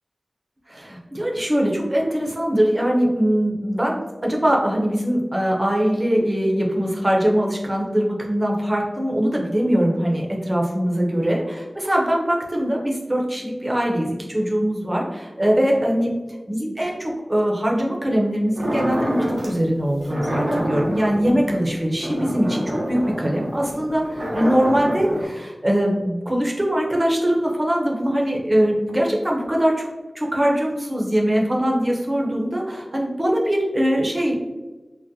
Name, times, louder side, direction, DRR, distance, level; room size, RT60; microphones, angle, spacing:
voice 1, 0.7-16.1 16.5-29.9 30.1-34.4, equal, 30° right, -1 dB, 0.7 m, -22 dB
sound 1, 18.6-19.6 20.0-25.2, equal, 90° right, 0.7 m, -27 dB
3.8 x 2.0 x 2.7 m, 1.2 s
wide cardioid pair, 55°, 0 cm